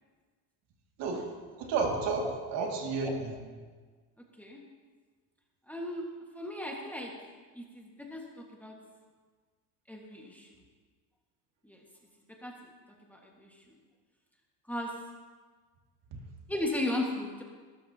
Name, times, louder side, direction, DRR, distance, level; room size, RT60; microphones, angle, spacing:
voice 1, 1.6-3.3, right 4 dB, 65° right, 1 dB, 2.5 m, -31 dB
voice 2, 2.2-2.7 3.0-3.1 4.4-4.6 5.7-6.0 6.3-7.1 7.5-8.8 9.9-10.5 11.6-11.8 12.4-12.7 13.1-13.6 14.7-14.9 16.5-17.4, left 1 dB, 5° left, -1 dB, 1.7 m, -36 dB
19.0 x 13.0 x 2.9 m, 1.4 s
cardioid pair, 130°, 45 cm